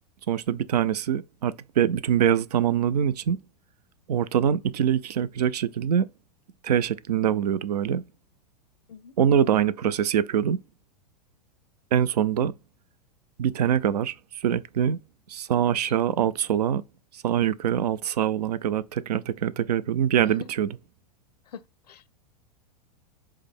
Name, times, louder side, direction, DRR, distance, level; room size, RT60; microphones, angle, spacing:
voice 1, 0.3-3.4 4.1-6.1 6.6-8.0 9.2-10.6 11.9-12.5 13.4-15.0 15.3-16.8 17.1-20.7, right 9 dB, 75° right, 0.4 m, -24 dB
voice 2, 21.5-22.0, left 7 dB, 75° left, 0.5 m, -44 dB
4.6 x 2.2 x 3.5 m
hypercardioid pair, 100°, 21 cm